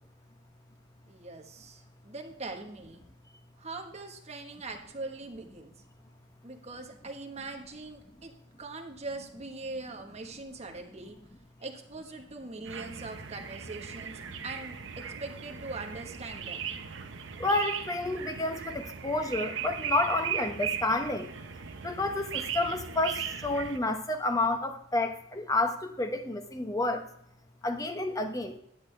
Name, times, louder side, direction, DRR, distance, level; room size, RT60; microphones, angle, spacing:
voice 1, 1.1-3.0 3.6-5.7 6.4-11.2 11.6-16.7, right 3 dB, 35° right, 3 dB, 1.2 m, -42 dB
sound 1, 12.7-23.8, right 8 dB, 75° right, 0.8 m, -38 dB
voice 2, 17.4-21.3 21.8-27.0 27.6-28.5, left 2 dB, 20° left, 6 dB, 0.9 m, -30 dB
10.5 x 8.2 x 3.3 m, 0.74 s
head